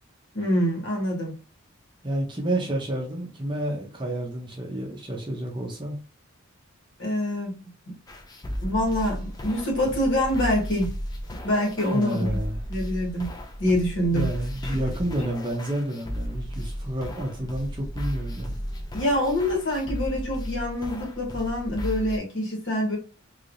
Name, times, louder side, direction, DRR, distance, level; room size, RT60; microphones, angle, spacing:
voice 1, 0.3-1.3 7.0-7.5 8.6-10.9 11.4-12.4 12.7-13.3 13.6-14.3 14.7-14.8 18.9-23.0, left 1 dB, 60° left, 1.5 m, -25 dB
voice 2, 2.0-6.0 11.9-12.6 14.1-18.5, right 1 dB, 20° right, 0.7 m, -30 dB
sound 1, 8.1-22.2, equal, 20° left, 0.4 m, -34 dB
3.3 x 2.8 x 2.5 m
head